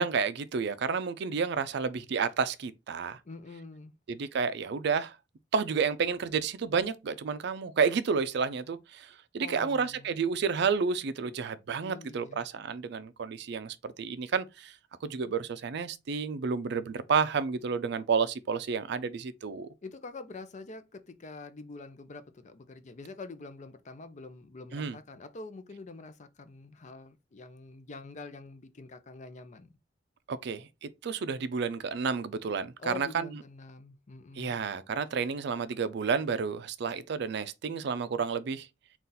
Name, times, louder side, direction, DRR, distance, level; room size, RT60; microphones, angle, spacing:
voice 1, 0.0-3.2 4.1-5.2 5.5-14.7 15.0-19.7 24.7-25.0 30.3-33.3 34.4-38.7, right 5 dB, 65° right, 0.4 m, -30 dB
voice 2, 3.2-3.9 9.4-10.2 11.8-12.4 19.8-29.7 32.8-34.6, left 3 dB, 40° left, 0.5 m, -45 dB
4.0 x 2.4 x 3.9 m
head